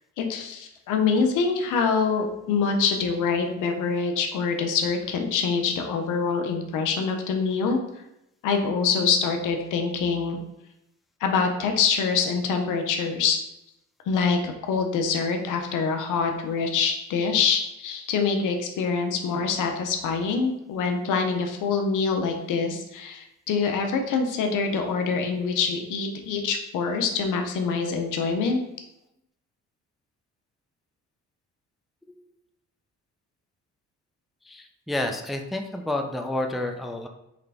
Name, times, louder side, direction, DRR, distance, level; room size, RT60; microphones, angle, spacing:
voice 1, 0.2-7.8 8.4-10.4 11.2-13.4 14.1-28.6, left 5 dB, 85° left, 4 dB, 0.7 m, -25 dB
voice 2, 34.5-37.1, left 1 dB, ahead, 4 dB, 0.4 m, -29 dB
3.8 x 3.3 x 3.4 m, 0.86 s
cardioid pair, 90°, 30 cm